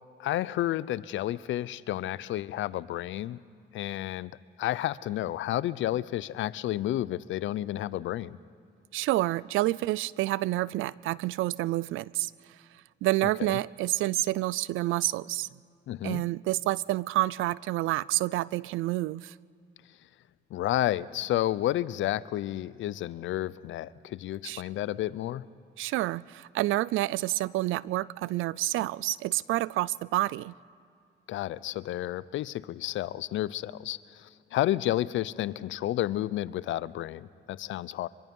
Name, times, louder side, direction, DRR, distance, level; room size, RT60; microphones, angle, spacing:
voice 1, 0.2-3.4 3.7-4.3 4.6-8.4 13.2-13.6 15.9-16.2 20.5-25.4 31.3-38.1, left 14 dB, 75° left, 0.6 m, -31 dB
voice 2, 8.9-12.3 13.0-15.5 16.0-19.3 24.4-24.6 25.8-30.5, right 17 dB, 85° right, 0.4 m, -28 dB
24.0 x 23.5 x 5.4 m
cardioid pair, 90°, 20 cm